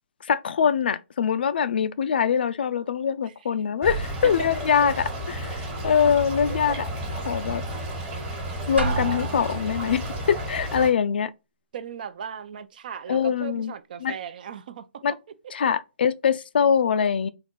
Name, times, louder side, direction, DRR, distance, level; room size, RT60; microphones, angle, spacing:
voice 1, 0.3-4.9 5.3-6.9 7.3-7.6 8.7-11.3 13.1-13.7 14.0-14.1 15.0-15.2 15.5-17.3, left 7 dB, 60° left, 0.3 m, -23 dB
Stream / Trickle dribble, 3.8-10.9, right 1 dB, 20° right, 1.3 m, -32 dB
Drum, 8.8-10.0, right 4 dB, 75° right, 1.3 m, -29 dB
voice 2, 11.7-14.9, right 8 dB, 50° right, 0.5 m, -37 dB
4.1 x 2.5 x 4.4 m
hypercardioid pair, 140°, 6 cm